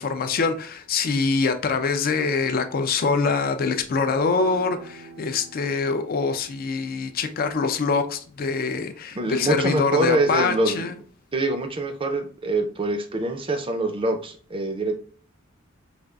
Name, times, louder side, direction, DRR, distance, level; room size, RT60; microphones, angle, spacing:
voice 1, 0.0-10.9, left 4 dB, 45° left, 8 dB, 0.4 m, -24 dB
sound 1, 4.2-10.8, right 3 dB, 90° right, 0.6 m, -48 dB
voice 2, 9.1-10.9 11.3-15.0, right 2 dB, 25° right, 7 dB, 0.5 m, -25 dB
5.0 x 2.4 x 2.3 m, 0.42 s
head